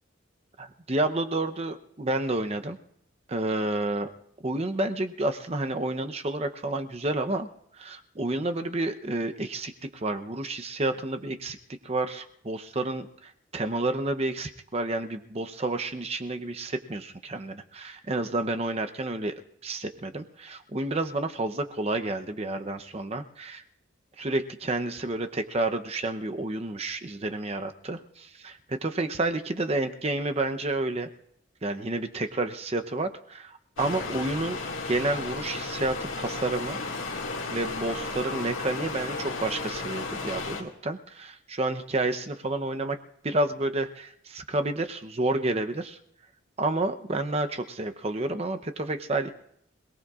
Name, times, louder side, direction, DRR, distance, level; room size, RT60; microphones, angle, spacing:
voice 1, 0.6-2.8 3.3-4.1 4.4-7.5 7.7-11.6 11.8-23.6 24.2-31.1 31.6-34.6 34.9-36.8 37.1-37.2 37.5-43.0 43.2-46.0 46.6-49.3, right 2 dB, 30° right, 7 dB, 0.7 m, -30 dB
sound 1, 33.8-40.6, left 3 dB, 85° left, 2.1 m, -34 dB
26.5 x 18.5 x 2.4 m, 0.70 s
head